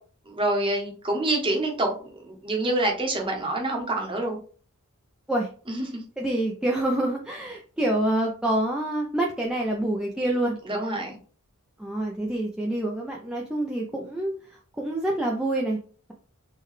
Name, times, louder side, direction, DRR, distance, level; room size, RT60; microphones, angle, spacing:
voice 1, 0.3-1.9 2.2-4.4 5.7-6.0 10.7-11.2, right 2 dB, 25° right, 1 dB, 0.8 m, -26 dB
voice 2, 6.2-10.6 11.8-15.8, right 1 dB, 5° right, -2 dB, 0.3 m, -27 dB
3.7 x 2.2 x 3.1 m, 0.41 s
head